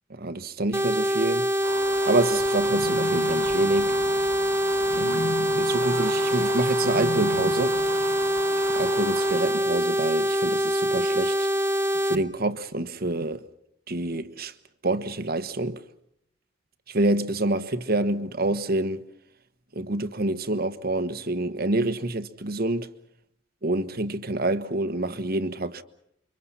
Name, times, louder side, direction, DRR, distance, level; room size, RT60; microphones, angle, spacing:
voice 1, 0.1-1.5 2.0-4.0 5.0-7.8 8.7-11.5 12.0-13.5 13.9-14.5 14.8-15.8 16.9-19.0 19.7-22.9 23.6-25.8, right 2 dB, 50° right, 1.3 m, -27 dB
sound 1, 0.7-12.1, equal, 15° right, 1.2 m, -24 dB
Fowl, 1.6-9.6, right 4 dB, 85° right, 2.8 m, -36 dB
sound 2, 2.6-8.6, left 2 dB, 60° left, 1.0 m, -38 dB
29.5 x 24.5 x 5.7 m
head